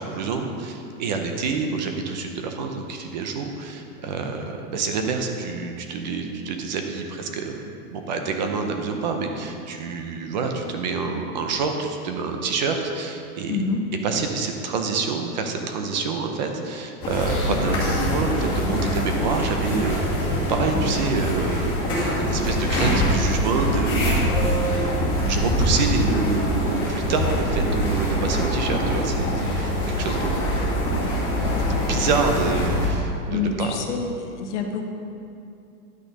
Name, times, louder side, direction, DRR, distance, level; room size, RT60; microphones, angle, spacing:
voice 1, 0.0-7.6 7.9-13.6 14.0-30.5 31.7-33.9, right 4 dB, 30° right, 4 dB, 0.6 m, -27 dB
voice 2, 13.5-13.8 17.5-17.6 25.2-25.5 33.3-34.9, left 4 dB, 50° left, 3 dB, 1.1 m, -27 dB
sound 1, 17.0-32.9, equal, 10° left, 1.9 m, -24 dB
11.0 x 6.4 x 5.2 m, 2.6 s
supercardioid pair, 175°, 46 cm